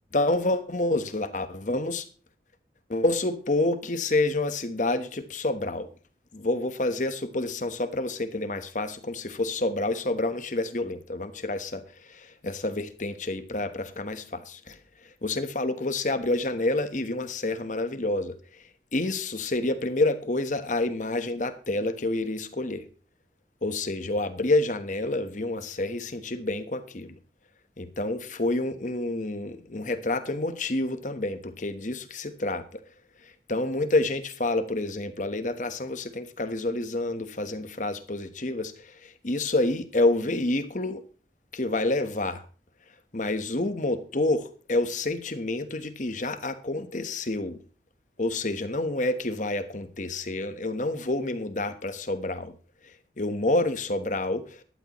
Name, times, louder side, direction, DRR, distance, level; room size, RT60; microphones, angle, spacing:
voice 1, 0.1-2.1 2.9-5.9 6.3-14.8 15.2-22.9 23.6-27.2 27.8-32.8 33.2-41.0 41.5-42.4 43.1-47.6 48.2-52.5 52.8-54.6, left 2 dB, 45° left, 10 dB, 1.2 m, -28 dB
15.5 x 11.5 x 3.1 m, 0.39 s
head